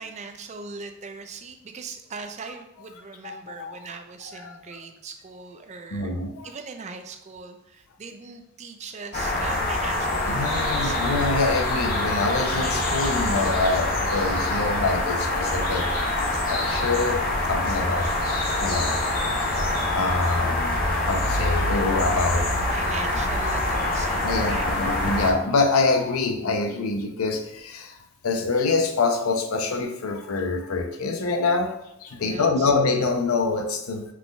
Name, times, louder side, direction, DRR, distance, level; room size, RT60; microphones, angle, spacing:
voice 1, 0.0-6.1 6.4-11.1 22.7-24.7 32.2-32.7, right 4 dB, 30° right, 6 dB, 0.4 m, -40 dB
voice 2, 3.2-3.8 4.3-4.8 5.9-6.5 10.1-15.9 16.5-18.1 18.6-19.0 19.5-22.5 24.2-28.0 28.2-34.1, left 3 dB, 90° left, 5 dB, 0.6 m, -25 dB
sound 1, 9.1-25.3, left 1 dB, 40° left, 0.8 m, -25 dB
5.8 x 3.7 x 2.3 m, 0.83 s
head